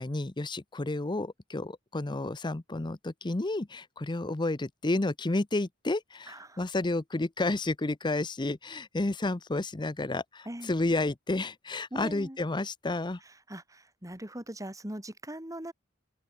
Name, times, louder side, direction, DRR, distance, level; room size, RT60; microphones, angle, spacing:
voice 1, 0.0-13.2, left 2 dB, 25° left, 0.7 m, -31 dB
voice 2, 6.3-6.6 10.5-10.7 11.9-12.4 13.5-15.7, right 1 dB, 15° right, 4.5 m, -40 dB
open air
head